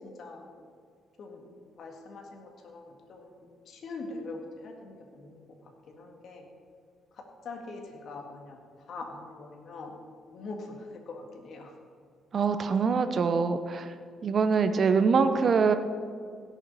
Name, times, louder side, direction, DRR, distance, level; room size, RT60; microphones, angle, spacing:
voice 1, 0.0-0.5 1.2-1.5 1.8-6.5 7.1-8.6 8.9-10.0 10.3-11.7, left 3 dB, 65° left, 1 dB, 1.7 m, -43 dB
voice 2, 12.3-13.9 14.2-15.7, right 5 dB, 50° right, 9 dB, 0.7 m, -24 dB
16.5 x 7.2 x 4.1 m, 2.1 s
cardioid pair, 90°, 0 cm